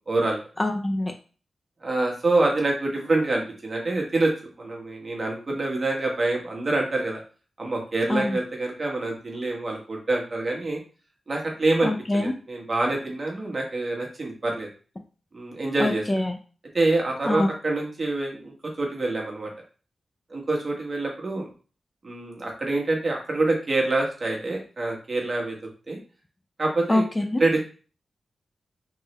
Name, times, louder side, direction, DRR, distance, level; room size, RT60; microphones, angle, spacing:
voice 1, 0.1-0.4 1.8-4.3 4.6-7.2 7.6-10.8 11.3-14.7 15.3-16.0 16.7-19.5 20.3-21.5 22.0-25.6 25.9-26.0 26.6-27.0 27.4-27.6, right 2 dB, 40° right, 0 dB, 1.2 m, -26 dB
voice 2, 0.6-1.1 8.1-8.4 11.8-12.3 15.8-16.3 17.3-17.5 26.9-27.4, left 1 dB, 20° left, 4 dB, 0.4 m, -24 dB
3.6 x 3.1 x 3.2 m, 0.38 s
wide cardioid pair, 105°, 0 cm